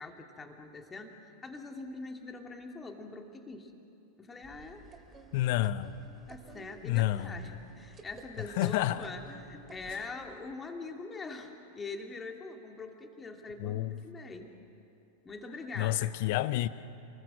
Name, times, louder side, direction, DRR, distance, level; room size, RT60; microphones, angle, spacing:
voice 1, 0.0-3.7 4.2-4.8 6.3-14.6 15.2-15.9 16.2-16.4, left 3 dB, 15° left, 4 dB, 2.5 m, -43 dB
sound 1, 4.4-10.4, right 3 dB, 20° right, 2.6 m, -53 dB
voice 2, 5.3-6.0 6.8-7.4 8.6-9.0 13.6-14.0 15.8-16.7, left 14 dB, 50° left, 15 dB, 0.8 m, -29 dB
29.5 x 20.5 x 7.7 m, 2.8 s
figure-of-eight pair, 90°, 0 cm